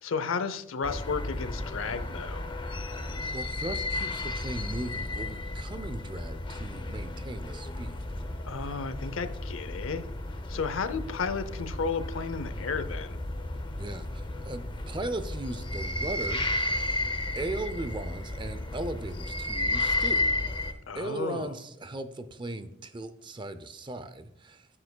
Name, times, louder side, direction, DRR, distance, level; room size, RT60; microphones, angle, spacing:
voice 1, 0.0-2.5 8.4-10.0 10.5-13.2 20.9-21.5, left 5 dB, 75° left, 12 dB, 0.6 m, -33 dB
sound 1, 0.8-20.7, left 2 dB, 25° left, 0.6 m, -33 dB
voice 2, 3.1-8.0 13.8-16.5 17.4-20.2 20.9-24.7, right 2 dB, 25° right, 11 dB, 0.5 m, -37 dB
9.8 x 7.1 x 2.2 m, 0.85 s
head